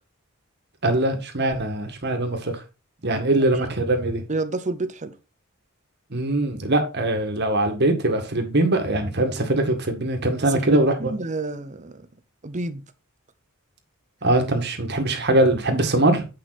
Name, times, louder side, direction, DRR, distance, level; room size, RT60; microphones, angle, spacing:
voice 1, 0.8-2.5 3.0-4.2 6.1-11.1 14.2-16.3, right 1 dB, 50° right, 1.9 m, -22 dB
voice 2, 4.3-5.1 10.5-12.1 12.4-12.8, right 3 dB, 35° right, 0.8 m, -30 dB
9.1 x 5.5 x 4.2 m
head